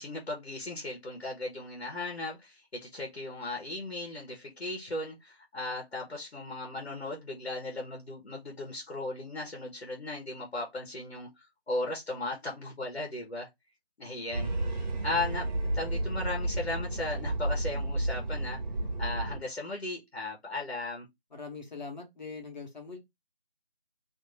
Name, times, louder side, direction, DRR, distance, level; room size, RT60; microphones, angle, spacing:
voice 1, 0.0-11.3 11.7-13.5 14.0-14.5 15.0-18.6 19.0-21.1, left 2 dB, 85° left, 1.3 m, -36 dB
sound 1, 14.3-19.4, right 1 dB, 45° right, 0.9 m, -32 dB
voice 2, 21.3-23.0, left 4 dB, 45° left, 1.2 m, -42 dB
3.0 x 2.6 x 3.1 m
figure-of-eight pair, 165°, 31 cm